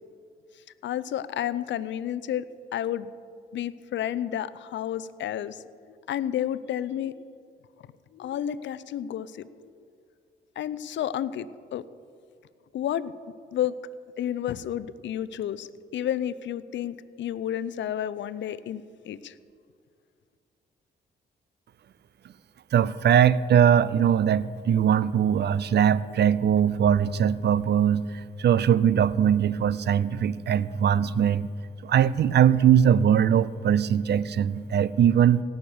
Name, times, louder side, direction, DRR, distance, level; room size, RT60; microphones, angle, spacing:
voice 1, 0.8-2.4 2.7-3.1 3.5-5.6 6.1-7.2 8.1-9.7 10.6-11.8 12.7-13.1 13.5-13.7 14.2-15.7 15.9-19.4, left 10 dB, 70° left, 17 dB, 0.6 m, -31 dB
voice 2, 22.7-28.0 28.4-31.5 31.8-35.4, right 9 dB, 60° right, 19 dB, 0.5 m, -21 dB
17.0 x 6.5 x 7.0 m, 2.2 s
supercardioid pair, 50°, 20 cm